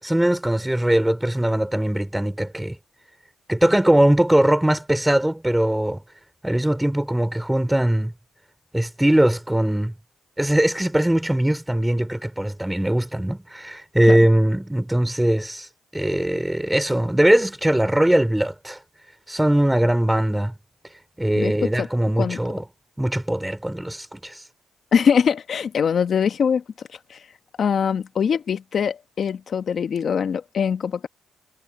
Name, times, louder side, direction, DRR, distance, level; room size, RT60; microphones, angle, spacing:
voice 1, 0.0-2.8 3.5-6.0 6.4-8.1 8.7-9.9 10.4-18.8 19.3-20.5 21.2-22.6 23.0-24.4, right 1 dB, 5° right, 4.9 m, -20 dB
voice 2, 21.3-21.9 22.2-22.4 24.9-27.2 27.6-31.1, left 7 dB, 55° left, 1.2 m, -23 dB
cardioid pair, 90°, 0 cm